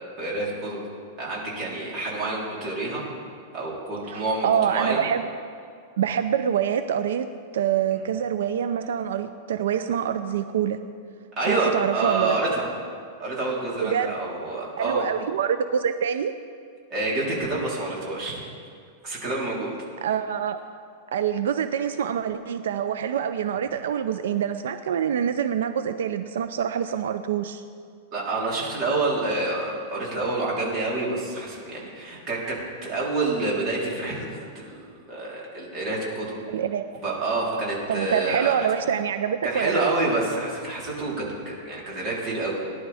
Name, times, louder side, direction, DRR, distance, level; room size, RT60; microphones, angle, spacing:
voice 1, 0.2-0.8 1.2-3.0 3.5-5.0 11.4-12.6 13.2-15.0 16.9-18.5 19.0-19.7 28.1-36.4 37.0-38.7 39.4-42.5, right 2 dB, 30° right, -5 dB, 3.7 m, -28 dB
voice 2, 4.1-5.3 6.0-10.8 11.5-12.4 13.8-14.1 14.8-16.3 20.0-20.6 21.1-27.6 36.5-37.0 37.9-39.8, right 8 dB, 90° right, 10 dB, 0.5 m, -26 dB
19.0 x 11.0 x 3.5 m, 2.2 s
supercardioid pair, 160°, 0 cm